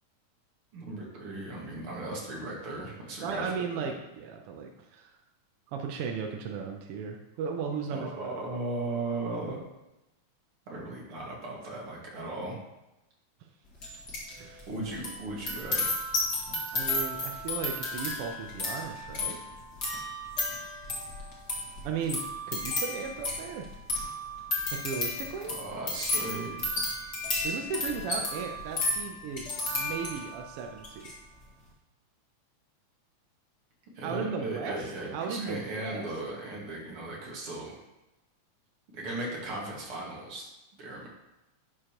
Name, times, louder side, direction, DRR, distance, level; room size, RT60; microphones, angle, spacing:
voice 1, 0.7-3.9 7.9-9.6 10.7-12.6 14.7-15.9 25.5-26.6 34.0-37.8 38.9-40.5 40.8-41.1, right 2 dB, 50° right, -3 dB, 2.6 m, -37 dB
voice 2, 3.2-5.1 5.7-8.3 14.4-14.7 16.7-19.5 21.8-23.7 24.7-25.6 27.4-31.1 34.0-36.1, right 6 dB, 75° right, 3 dB, 1.3 m, -36 dB
sound 1, 13.8-14.3 14.6-30.4 30.8-31.1, left 2 dB, 40° left, 2.2 m, -33 dB
11.0 x 6.7 x 3.0 m, 0.96 s
omnidirectional pair, 3.4 m